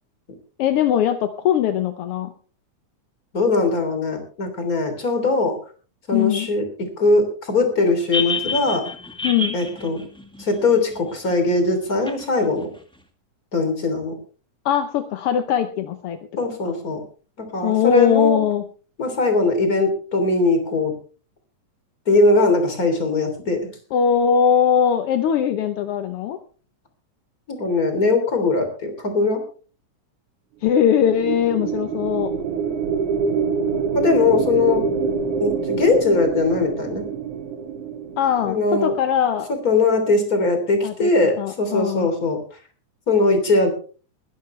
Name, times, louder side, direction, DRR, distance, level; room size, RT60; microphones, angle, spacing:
voice 1, 0.6-2.3 6.1-6.5 9.2-9.6 14.6-16.5 17.6-18.6 23.9-26.4 30.6-32.3 38.2-39.5 40.8-41.1 41.4-42.1, left 8 dB, 65° left, 8 dB, 1.5 m, -20 dB
voice 2, 3.3-5.6 6.1-8.9 9.5-10.0 10.4-12.7 13.5-14.1 16.4-17.0 17.4-18.4 19.0-20.9 22.1-23.7 27.5-29.4 33.9-34.9 35.4-37.0 38.4-38.9 39.6-42.4 43.1-43.7, left 3 dB, 30° left, 6 dB, 3.5 m, -20 dB
sound 1, 8.1-11.1 12.1-12.2, left 3 dB, 5° left, 1.1 m, -28 dB
sound 2, 30.6-39.1, right 6 dB, 75° right, 2.7 m, -26 dB
21.5 x 11.5 x 3.3 m, 0.38 s
omnidirectional pair, 3.5 m